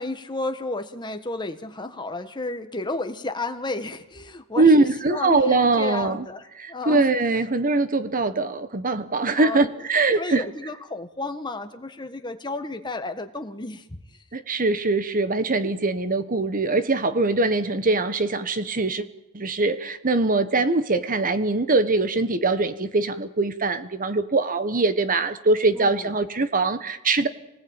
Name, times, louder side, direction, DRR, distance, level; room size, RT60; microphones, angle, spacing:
voice 1, 0.0-7.1 9.3-9.7 10.1-13.9 25.7-26.1, left 2 dB, 20° left, 7 dB, 1.5 m, -32 dB
voice 2, 4.6-6.3 6.6-10.4 14.3-19.1 19.3-27.3, right 3 dB, 40° right, 11 dB, 1.3 m, -22 dB
26.5 x 19.5 x 8.9 m, 0.92 s
head